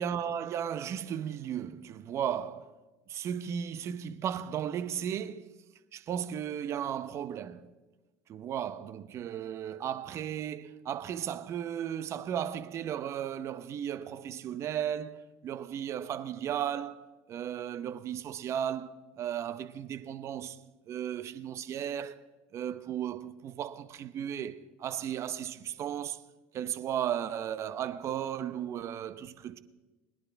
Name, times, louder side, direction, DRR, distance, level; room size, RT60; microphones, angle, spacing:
voice 1, 0.0-2.7 3.1-5.5 5.9-7.7 8.3-20.6 20.9-22.2 22.5-26.2 26.5-29.6, right 9 dB, 45° right, 0.8 m, -35 dB
21.0 x 10.5 x 3.5 m
supercardioid pair, 90°, 7 cm